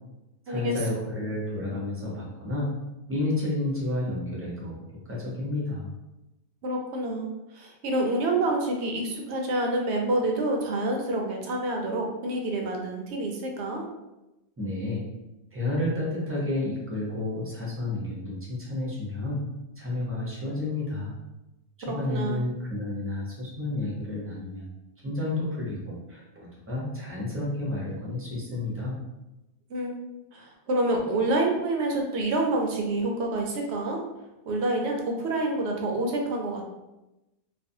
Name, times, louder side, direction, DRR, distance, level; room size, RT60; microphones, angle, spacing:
voice 1, 0.5-2.7 3.1-4.8 5.1-5.9 14.6-15.0 15.5-19.4 19.8-21.1 21.8-24.6 25.0-29.0, left 2 dB, 15° right, -6 dB, 0.6 m, -31 dB
voice 2, 6.6-13.9 21.9-22.4 29.7-29.9 30.3-34.0 34.5-36.7, right 2 dB, 80° right, 1 dB, 0.8 m, -27 dB
2.5 x 2.3 x 2.6 m, 0.98 s
omnidirectional pair, 1.1 m